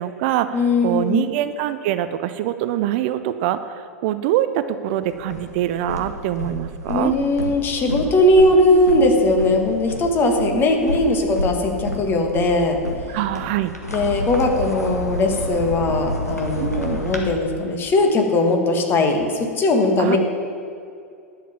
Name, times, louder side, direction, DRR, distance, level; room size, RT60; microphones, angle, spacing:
voice 1, 0.0-7.1 10.2-10.6 13.1-13.7 16.6-17.0 20.0-20.2, right 12 dB, 45° right, 12 dB, 0.5 m, -24 dB
voice 2, 0.5-1.3 6.9-12.8 13.9-20.2, left 2 dB, 25° left, 3 dB, 1.7 m, -19 dB
sound 1, 5.0-17.2, left 1 dB, 90° left, 1.6 m, -30 dB
11.0 x 7.5 x 7.2 m, 2.4 s
figure-of-eight pair, 95°, 8 cm